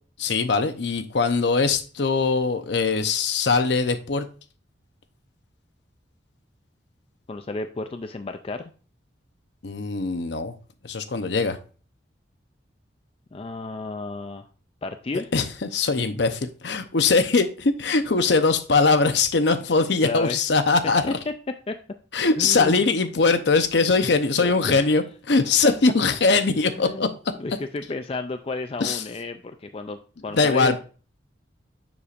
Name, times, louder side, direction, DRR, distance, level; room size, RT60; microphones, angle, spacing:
voice 1, 0.2-4.3 9.6-10.5 10.8-11.6 15.3-21.2 22.1-27.1 28.8-29.0 30.3-30.8, left 4 dB, 60° left, 9 dB, 0.7 m, -21 dB
voice 2, 7.3-8.7 13.3-14.5 14.8-15.3 20.0-20.4 21.1-21.3 21.7-21.8 22.4-22.8 24.4-24.9 25.6-25.7 26.8-30.8, left 3 dB, 30° left, 7 dB, 0.4 m, -32 dB
6.9 x 6.7 x 2.5 m, 0.37 s
head